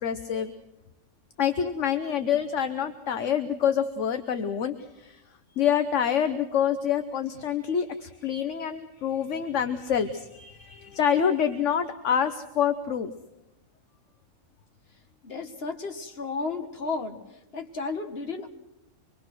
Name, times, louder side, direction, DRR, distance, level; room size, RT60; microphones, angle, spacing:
voice 1, 0.0-0.5 1.4-5.2 5.5-13.1, left 8 dB, 60° left, 9 dB, 1.3 m, -27 dB
voice 2, 15.2-17.2 17.5-18.5, left 4 dB, 45° left, 5 dB, 2.0 m, -33 dB
25.0 x 21.5 x 6.2 m, 0.90 s
omnidirectional pair, 1.4 m